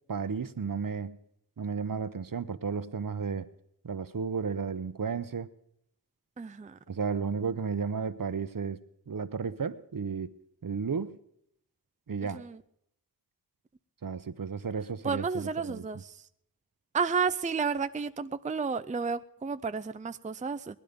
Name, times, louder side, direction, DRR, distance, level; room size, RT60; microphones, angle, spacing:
voice 1, 0.1-1.2 1.6-3.5 3.8-5.5 6.9-8.8 9.1-10.3 10.6-11.2 12.1-12.4 14.0-15.8, right 5 dB, 60° right, 14 dB, 0.8 m, -33 dB
voice 2, 6.4-6.8 12.3-12.6 15.0-16.3 16.9-20.8, right 5 dB, 20° right, 12 dB, 0.4 m, -32 dB
19.5 x 11.0 x 5.1 m, 0.74 s
wide cardioid pair, 65°, 38 cm